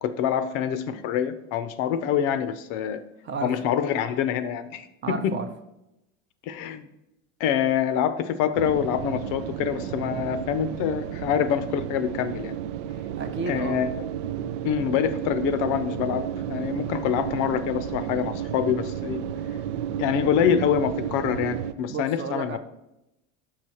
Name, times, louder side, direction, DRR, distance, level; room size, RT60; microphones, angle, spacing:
voice 1, 0.0-3.0 3.4-5.3 6.5-6.9 7.4-12.5 13.5-14.0 14.6-16.2 16.5-19.2 20.0-22.6, left 9 dB, 55° left, 12 dB, 0.6 m, -26 dB
voice 2, 5.0-5.5 13.2-13.8 21.9-22.6, right 4 dB, 30° right, 7 dB, 0.7 m, -32 dB
sound 1, 8.5-21.7, right 10 dB, 70° right, 0.5 m, -32 dB
5.8 x 4.8 x 4.3 m, 0.87 s
supercardioid pair, 105°, 38 cm